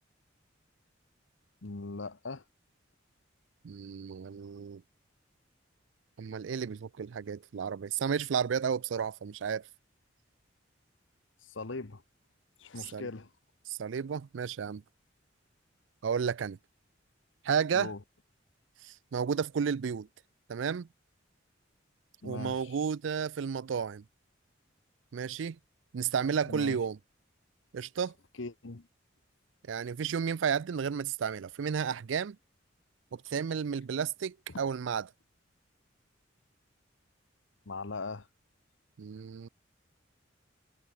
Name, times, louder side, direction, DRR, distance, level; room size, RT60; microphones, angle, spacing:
voice 1, 1.6-2.4 11.4-12.0 12.6-13.3 17.7-18.0 22.2-22.8 26.5-26.8 28.4-28.9 34.5-34.6 37.7-38.3, left 3 dB, 80° left, 1.2 m, -40 dB
voice 2, 3.6-4.8 6.2-9.6 12.8-13.1 13.7-14.8 16.0-16.6 17.4-17.9 18.8-20.1 20.5-20.9 22.2-24.0 25.1-25.6 25.9-27.0 27.7-28.1 29.7-32.4 33.1-35.1 39.0-39.5, right 7 dB, 75° right, 0.4 m, -32 dB
head